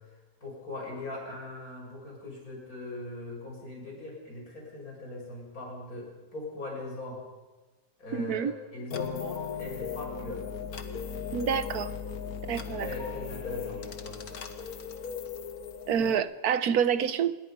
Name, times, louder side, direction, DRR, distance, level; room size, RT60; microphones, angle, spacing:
voice 1, 0.4-7.2 8.0-10.5 12.5-14.4, left 2 dB, 75° left, -2 dB, 7.9 m, -40 dB
voice 2, 8.1-8.5 11.3-11.9 12.5-12.9 15.9-17.4, right 8 dB, 90° right, 13 dB, 1.4 m, -27 dB
sound 1, 8.9-16.2, left 6 dB, 90° left, 1.9 m, -37 dB
27.0 x 21.5 x 5.4 m, 1.2 s
omnidirectional pair, 1.6 m